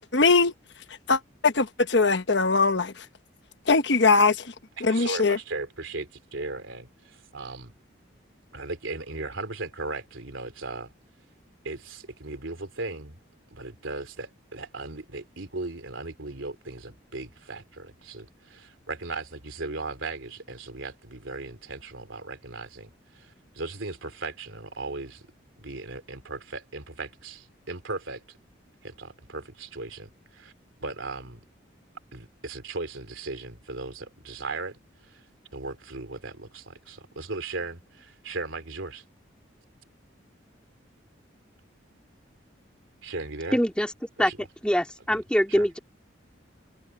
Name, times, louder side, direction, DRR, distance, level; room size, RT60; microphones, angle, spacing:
voice 1, 0.1-0.5 1.1-2.9 3.7-4.4 4.8-5.4, left 4 dB, 65° left, 1.1 m, -21 dB
voice 2, 4.8-7.7 8.5-10.9 11.6-13.2 13.5-25.2 25.6-28.4 28.8-30.5 30.8-31.4 32.1-35.2 35.5-39.0 43.0-43.6 44.2-44.5 45.5-45.7, right 3 dB, 90° right, 3.3 m, -37 dB
voice 3, 43.5-43.9 44.2-44.3 44.6-45.8, equal, 5° left, 2.4 m, -23 dB
head